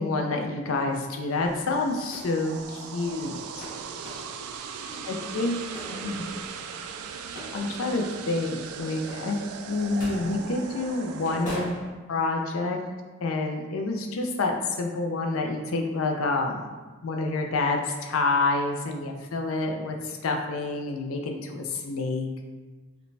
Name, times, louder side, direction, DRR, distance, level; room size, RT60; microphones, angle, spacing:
voice 1, 0.0-3.7 5.1-5.6 5.9-6.2 7.5-9.4 9.6-11.8 12.1-12.8 13.2-16.6 17.0-22.3, left 3 dB, 70° left, 3 dB, 0.4 m, -28 dB
sound 1, 1.4-11.9, equal, 35° left, 1.5 m, -44 dB
sound 2, 1.4-11.5, right 6 dB, 85° right, 0.3 m, -39 dB
voice 2, 4.8-7.0, equal, 25° right, -2 dB, 0.5 m, -46 dB
4.9 x 2.2 x 3.2 m, 1.3 s
head